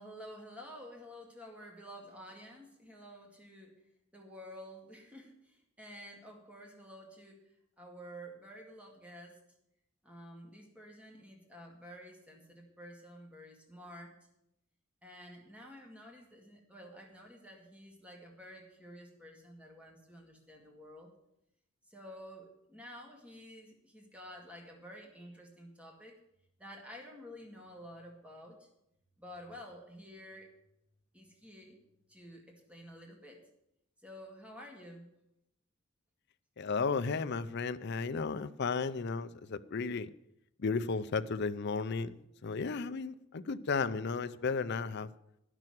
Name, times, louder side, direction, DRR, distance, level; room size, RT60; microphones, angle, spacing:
voice 1, 0.0-3.8 4.1-7.5 7.8-9.4 10.0-14.2 15.0-21.1 21.8-26.2 26.6-28.7 29.2-30.5 31.1-31.8 32.1-33.4 34.0-35.1, equal, 5° right, 0 dB, 2.1 m, -51 dB
voice 2, 36.6-40.1 40.6-42.2 42.4-45.1, left 4 dB, 55° left, 12 dB, 0.6 m, -34 dB
11.0 x 6.2 x 9.1 m, 0.81 s
head